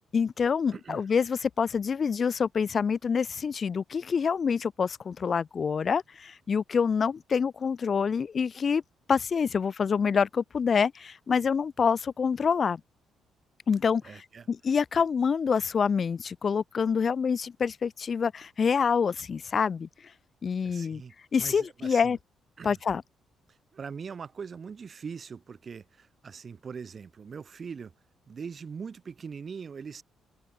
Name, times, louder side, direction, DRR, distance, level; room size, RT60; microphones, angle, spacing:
voice 1, 0.1-8.8 9.1-12.8 13.7-14.0 14.5-19.9 20.4-21.0 21.3-22.2 22.6-23.0, left 6 dB, 45° left, 1.1 m, -26 dB
voice 2, 0.7-1.0 14.0-14.5 14.9-15.0 20.6-21.1 21.4-22.2 22.6-22.8 23.5-27.9 28.3-30.0, right 6 dB, 45° right, 3.2 m, -41 dB
cardioid pair, 90°, 0 cm